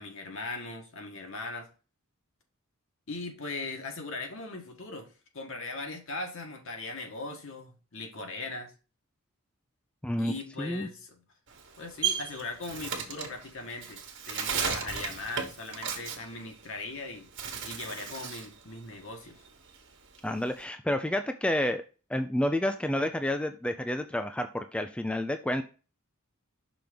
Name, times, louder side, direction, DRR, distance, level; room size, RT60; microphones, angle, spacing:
voice 1, 0.0-1.7 3.1-5.1 5.3-8.7 10.2-11.2 11.8-17.3 17.6-19.4, left 3 dB, 65° left, 3 dB, 1.5 m, -39 dB
voice 2, 10.6-10.9 20.2-21.8 22.1-25.6, left 1 dB, 5° left, 7 dB, 0.3 m, -29 dB
Bird, 11.5-17.0 17.3-18.6 18.9-20.6, right 7 dB, 55° right, 1.4 m, -35 dB
6.0 x 3.6 x 5.0 m, 0.34 s
head